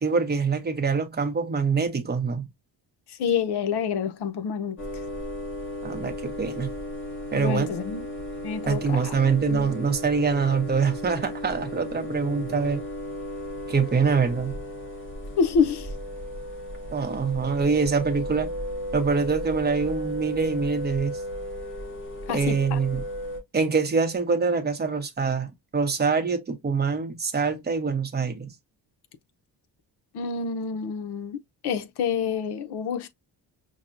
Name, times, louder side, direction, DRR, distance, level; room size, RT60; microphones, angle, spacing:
voice 1, 0.0-2.5 5.8-6.7 7.3-7.7 8.6-12.8 13.7-14.6 16.9-18.5 18.9-21.2 22.3-23.0 23.5-28.5, right 5 dB, 25° right, 0.7 m, -25 dB
voice 2, 3.1-4.8 7.3-8.0 8.4-9.1 9.5-9.7 15.4-15.9 22.3-22.8 30.1-31.4 31.6-33.1, left 6 dB, 70° left, 0.7 m, -27 dB
sound 1, 4.8-23.4, equal, 30° left, 1.2 m, -35 dB
5.7 x 2.1 x 2.5 m
wide cardioid pair, 160°, 41 cm